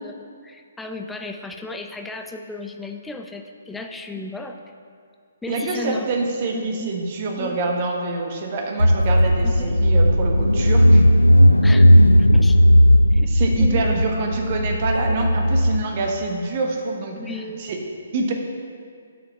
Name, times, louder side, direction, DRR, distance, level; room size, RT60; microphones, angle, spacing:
voice 1, 0.0-4.7 5.4-6.1 6.5-6.9 7.4-7.6 9.4-9.8 11.6-11.9 12.3-12.6 13.1-13.9 17.2-17.6, left 2 dB, 5° left, 4 dB, 0.4 m, -35 dB
voice 2, 5.5-11.0 13.2-17.2 17.6-17.8 18.1-18.3, right 3 dB, 40° right, 2 dB, 1.2 m, -26 dB
Car / Engine, 8.8-15.8, equal, 90° left, 0.3 m, -15 dB
8.8 x 5.1 x 5.7 m, 2.2 s
figure-of-eight pair, 130°, 0 cm